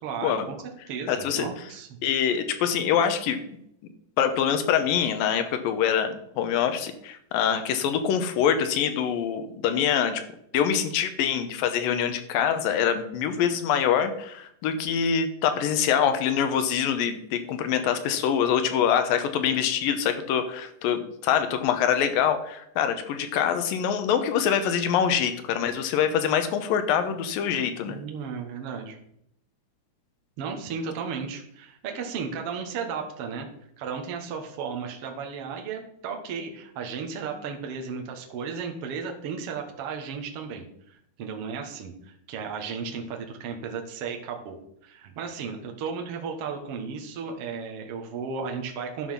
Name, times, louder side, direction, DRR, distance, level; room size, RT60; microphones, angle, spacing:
voice 1, 0.0-0.6 0.9-2.0 27.9-29.0 30.4-33.5 33.8-49.1, right 5 dB, 55° right, 2 dB, 1.9 m, -34 dB
voice 2, 1.1-1.5 2.0-3.4 4.2-10.2 10.5-28.0, left 8 dB, 85° left, 9 dB, 2.6 m, -25 dB
11.0 x 5.6 x 5.7 m, 0.73 s
omnidirectional pair, 4.0 m